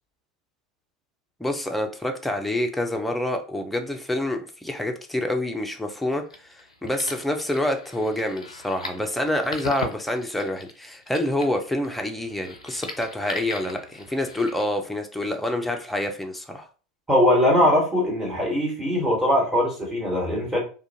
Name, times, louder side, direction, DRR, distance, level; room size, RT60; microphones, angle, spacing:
voice 1, 1.4-16.7, left 1 dB, 5° left, 4 dB, 0.5 m, -27 dB
sound 1, 6.1-14.6, left 3 dB, 85° left, 0.4 m, -39 dB
voice 2, 17.1-20.6, left 1 dB, 15° right, -4 dB, 1.3 m, -21 dB
2.4 x 2.1 x 2.7 m, 0.36 s
figure-of-eight pair, 80°, 3 cm